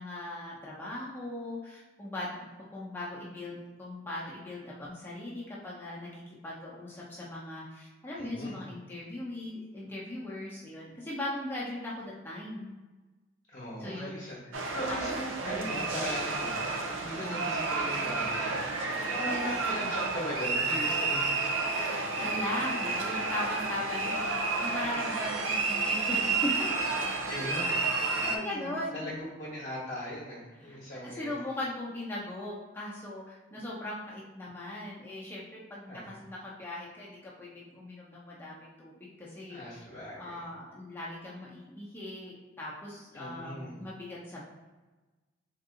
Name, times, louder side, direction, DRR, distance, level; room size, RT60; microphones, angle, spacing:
voice 1, 0.0-2.4 2.7-6.1 6.4-12.7 13.8-14.3 15.4-15.6 19.2-19.5 21.8-26.7 27.4-27.7 27.9-29.1 30.6-30.8 31.0-39.8 40.2-44.4, left 1 dB, 10° left, -6 dB, 0.7 m, -39 dB
voice 2, 8.2-8.6 13.5-14.4 14.7-21.6 27.3-27.8 28.2-31.3 35.9-36.2 39.5-40.4 43.1-43.8, equal, 40° left, -8 dB, 1.0 m, -39 dB
sound 1, 14.5-28.4, right 3 dB, 85° right, 0.6 m, -31 dB
3.7 x 2.6 x 3.8 m, 1.2 s
head